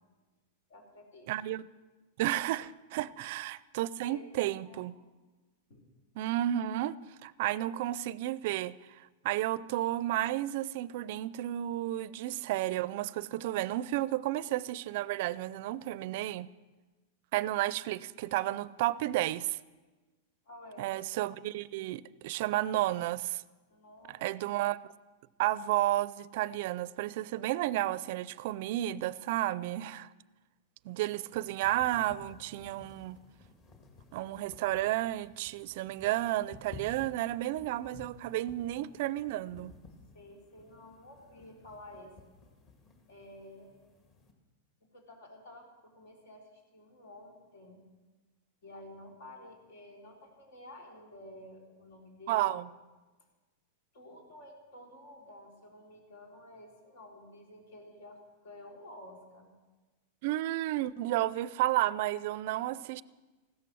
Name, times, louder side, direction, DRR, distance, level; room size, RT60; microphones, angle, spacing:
voice 1, 0.7-1.3 2.9-3.0 4.0-4.9 5.7-5.8 20.5-20.9 23.7-24.3 40.1-42.1 43.1-43.7 44.8-47.8 48.6-52.7 53.9-59.5, left 1 dB, 75° left, 4.4 m, -51 dB
voice 2, 1.3-1.6 2.2-4.9 6.2-6.9 7.2-16.5 17.3-19.6 20.8-23.4 24.1-24.8 25.4-30.1 30.8-33.2 34.1-39.7 52.3-52.7 60.2-63.0, right 15 dB, 55° right, 0.4 m, -32 dB
sound 1, 31.1-44.3, left 4 dB, 30° left, 2.0 m, -55 dB
15.5 x 13.0 x 6.3 m
supercardioid pair, 150°, 0 cm